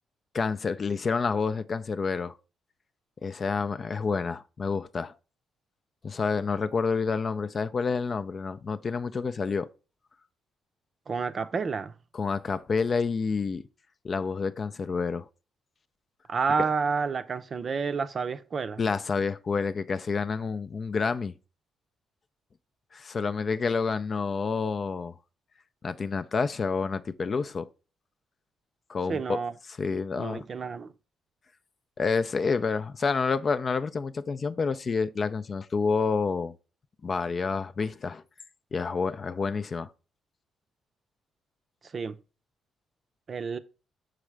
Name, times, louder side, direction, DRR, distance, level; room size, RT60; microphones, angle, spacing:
voice 1, 0.3-2.4 3.2-5.1 6.0-9.7 12.1-13.6 14.0-15.3 18.8-21.3 22.9-25.1 25.8-27.7 28.9-29.4 29.7-30.5 32.0-36.5 37.0-38.2 38.7-39.9, left 5 dB, 40° left, 0.4 m, -28 dB
voice 2, 11.1-11.9 16.3-18.8 29.1-29.5 30.2-30.9 41.9-42.2 43.3-43.6, right 5 dB, 45° right, 0.6 m, -29 dB
6.2 x 4.8 x 3.3 m
cardioid pair, 90°, 0 cm